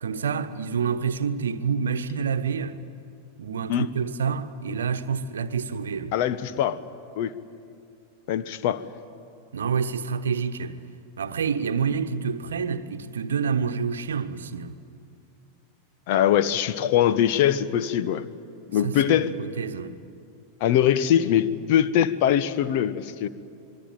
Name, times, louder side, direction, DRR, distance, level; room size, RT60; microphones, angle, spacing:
voice 1, 0.0-2.8 3.4-6.2 9.5-10.8 11.2-14.8 18.8-19.9, right 6 dB, 65° right, 1.1 m, -28 dB
voice 2, 6.1-6.8 7.2-7.3 8.3-8.8 16.1-18.2 18.7-19.3 20.6-23.3, left 10 dB, 45° left, 1.0 m, -22 dB
26.0 x 22.0 x 9.1 m
figure-of-eight pair, 90°, 0 cm